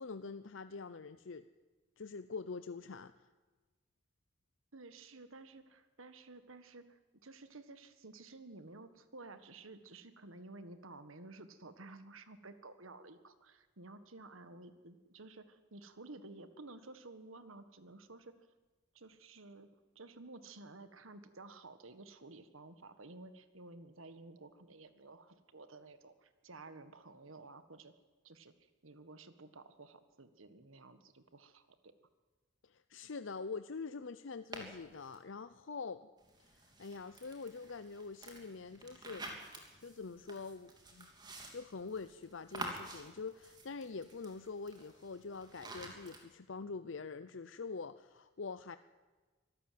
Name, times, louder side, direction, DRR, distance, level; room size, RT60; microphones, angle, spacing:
voice 1, 0.0-1.5 2.0-3.1 32.6-36.1 36.5-41.1 41.5-48.8, left 4 dB, 70° left, 12 dB, 0.6 m, -45 dB
voice 2, 4.7-18.3 18.9-19.7 19.9-27.9 28.2-31.9, right 2 dB, 90° right, 11 dB, 1.6 m, -53 dB
sound 1, 34.5-35.2 36.2-46.2, right 2 dB, 20° right, 3.2 m, -50 dB
24.5 x 13.5 x 9.3 m, 1.3 s
head